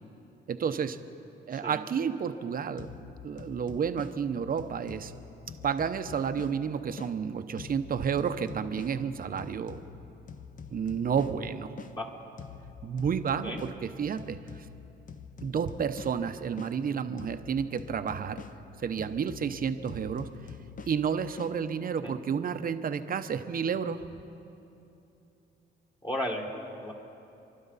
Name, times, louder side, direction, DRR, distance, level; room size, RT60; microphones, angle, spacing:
voice 1, 0.5-1.0 1.5-5.1 5.6-9.8 10.7-11.7 12.8-14.7 15.4-18.4 18.8-20.3 20.9-24.0, right 7 dB, 45° right, 10 dB, 0.8 m, -31 dB
sound 1, 2.8-7.2 7.6-12.0 12.4-16.8 17.2-21.6, left 6 dB, 40° left, 0.8 m, -46 dB
voice 2, 26.0-26.5 26.8-26.9, left 1 dB, 20° left, 1 dB, 1.8 m, -34 dB
28.5 x 12.0 x 4.1 m, 2.8 s
cardioid pair, 90°, 20 cm